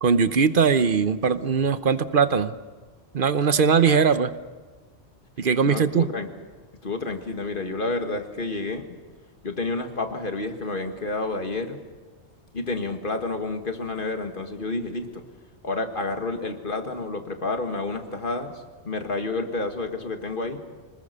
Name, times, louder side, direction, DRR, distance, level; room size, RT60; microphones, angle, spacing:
voice 1, 0.0-2.5 3.1-4.3 5.4-6.1, right 6 dB, 55° right, 12 dB, 1.0 m, -20 dB
voice 2, 5.6-6.3 6.8-8.8 9.4-11.8 12.5-15.2 15.6-20.6, left 3 dB, 50° left, 6 dB, 1.9 m, -30 dB
26.5 x 20.0 x 6.8 m, 1.3 s
omnidirectional pair, 1.1 m